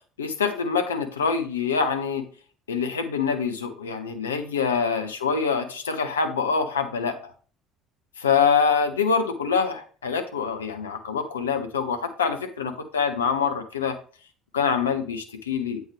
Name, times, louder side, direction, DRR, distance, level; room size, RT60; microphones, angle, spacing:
voice 1, 0.2-2.2 2.7-7.3 8.2-13.9 14.5-15.8, left 6 dB, 80° left, 7 dB, 0.6 m, -25 dB
7.9 x 4.5 x 3.2 m, 0.41 s
figure-of-eight pair, 60°, 0 cm